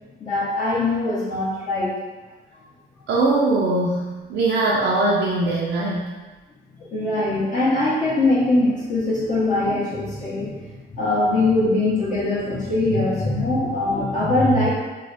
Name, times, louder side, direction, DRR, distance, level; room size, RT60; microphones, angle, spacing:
voice 1, 0.2-1.9 6.8-14.7, left 2 dB, 40° left, -10 dB, 1.4 m, -22 dB
voice 2, 3.1-6.1, right 2 dB, 70° right, -5 dB, 0.6 m, -21 dB
3.1 x 2.3 x 4.0 m, 1.2 s
cardioid pair, 90°, 20 cm